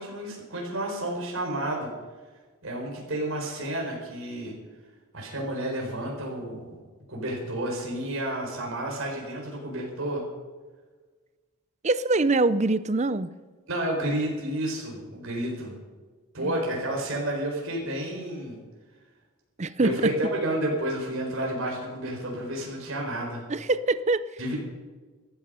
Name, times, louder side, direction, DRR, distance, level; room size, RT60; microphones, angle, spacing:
voice 1, 0.0-1.9 2.6-4.5 5.1-6.8 7.1-10.2 13.7-15.7 16.3-18.6 19.8-23.4 24.4-24.6, right 1 dB, 65° right, -1 dB, 4.4 m, -31 dB
voice 2, 11.8-13.3 16.4-16.6 19.6-19.9 23.5-24.2, right 3 dB, 30° right, 15 dB, 0.6 m, -24 dB
14.5 x 13.0 x 5.5 m, 1.4 s
head